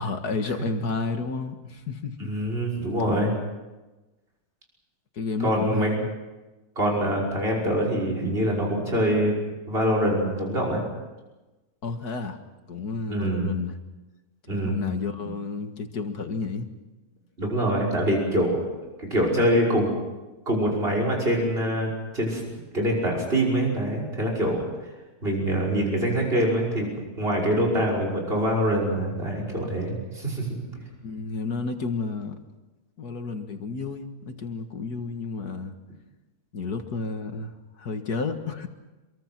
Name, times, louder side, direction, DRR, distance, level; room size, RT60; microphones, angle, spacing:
voice 1, 0.0-2.3 5.1-6.1 11.8-12.4 12.7-13.8 14.6-16.7 31.0-32.4 33.0-35.7 36.5-38.7, left 4 dB, 80° left, 6 dB, 2.3 m, -31 dB
voice 2, 2.2-3.3 5.4-5.9 6.8-9.4 9.7-10.8 13.1-13.5 14.5-14.8 15.2-15.3 17.4-18.7 19.0-19.9 20.5-22.4 22.7-24.6 25.2-26.9 27.2-30.5, right 1 dB, 40° right, -1 dB, 6.1 m, -24 dB
27.5 x 23.0 x 6.1 m, 1.1 s
omnidirectional pair, 1.6 m